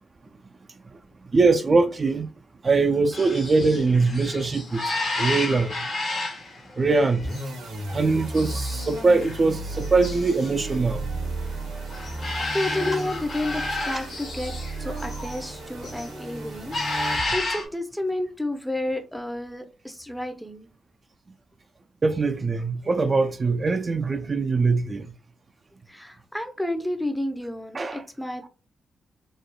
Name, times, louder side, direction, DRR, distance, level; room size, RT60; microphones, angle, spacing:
voice 1, 1.3-2.3 2.6-5.9 6.8-7.5 7.9-11.1 12.4-12.5 22.0-25.1 27.7-28.0, right 3 dB, 45° right, 0.3 m, -22 dB
sound 1, 3.1-15.4 15.7-16.2 16.5-17.6, left 2 dB, 60° left, 1.0 m, -32 dB
sound 2, 7.2-17.6, right 2 dB, 85° right, 0.7 m, -34 dB
voice 2, 12.5-14.5 14.8-20.7 25.9-28.5, left 1 dB, 5° left, 0.7 m, -31 dB
3.0 x 2.4 x 2.2 m
supercardioid pair, 45°, 0 cm